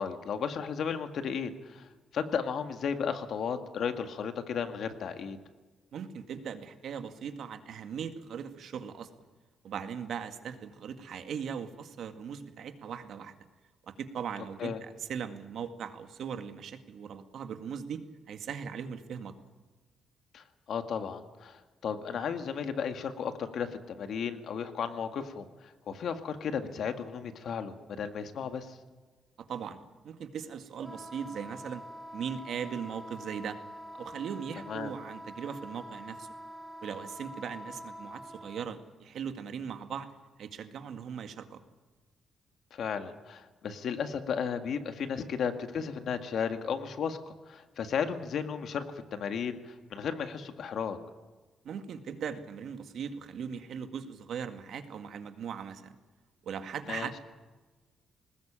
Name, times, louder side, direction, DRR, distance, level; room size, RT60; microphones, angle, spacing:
voice 1, 0.0-5.4 14.6-14.8 20.3-25.5 25.9-28.8 34.7-34.9 42.7-48.8 49.1-51.0 56.9-57.1, left 7 dB, 60° left, 8 dB, 1.9 m, -34 dB
voice 2, 5.9-9.1 9.6-13.3 13.9-19.3 29.5-29.8 30.0-31.8 32.1-33.6 33.9-36.3 36.8-40.1 40.4-41.6 51.6-55.9 56.4-57.2, right 7 dB, 65° right, 8 dB, 2.0 m, -39 dB
Wind instrument woodwind instrument, 30.8-38.7, equal, ahead, 1.8 m, -45 dB
21.0 x 19.5 x 8.9 m, 1.3 s
cardioid pair, 145°, 0 cm